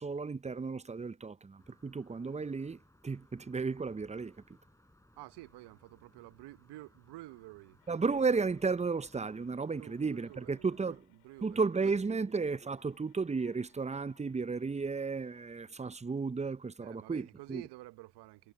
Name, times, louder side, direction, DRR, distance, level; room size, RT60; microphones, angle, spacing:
voice 1, 0.0-4.4 7.9-11.0 11.4-17.6, right 4 dB, 15° right, 0.7 m, -33 dB
sound 1, 1.6-11.0, left 1 dB, 5° left, 7.4 m, -65 dB
voice 2, 5.1-8.0 9.8-11.7 12.1-12.3 16.8-18.5, right 19 dB, 75° right, 1.1 m, -51 dB
sound 2, 7.8-16.0, left 19 dB, 90° left, 4.4 m, -68 dB
hypercardioid pair, 45°, 41 cm